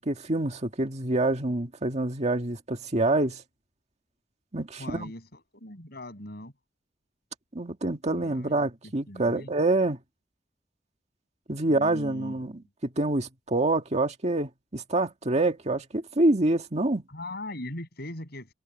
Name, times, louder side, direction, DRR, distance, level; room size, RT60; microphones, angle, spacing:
voice 1, 0.1-3.4 4.5-5.1 7.5-10.0 11.5-12.5 13.0-17.0, right 2 dB, 40° right, 1.9 m, -26 dB
voice 2, 4.8-6.5 8.1-9.5 11.7-12.3 17.1-18.5, left 1 dB, 60° left, 8.0 m, -40 dB
head